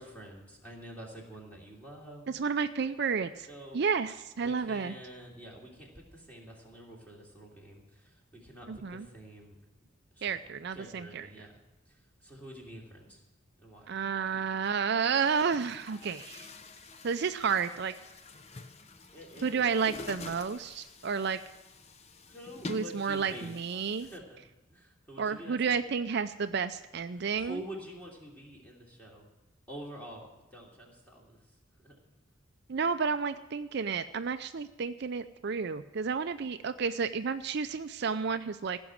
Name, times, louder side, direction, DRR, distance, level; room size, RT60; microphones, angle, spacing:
voice 1, 0.0-2.3 3.5-3.8 4.4-9.6 10.2-10.4 10.7-11.6 11.9-13.2 13.6-13.9 19.1-19.7 22.3-23.5 24.0-24.4 24.7-25.8 27.1-29.3 29.7-31.4 31.8-32.0, right 1 dB, 10° left, -2 dB, 2.9 m, -47 dB
voice 2, 2.3-3.5 3.7-4.9 8.7-9.1 10.2-11.3 13.9-16.5 17.0-17.9 19.4-21.4 22.7-24.1 25.2-27.6 32.7-38.8, right 6 dB, 55° right, 10 dB, 0.5 m, -31 dB
Chatter / Gurgling / Tap, 14.3-14.4 15.1-24.2, left 3 dB, 30° left, 0.7 m, -47 dB
16.0 x 6.2 x 9.5 m, 1.1 s
head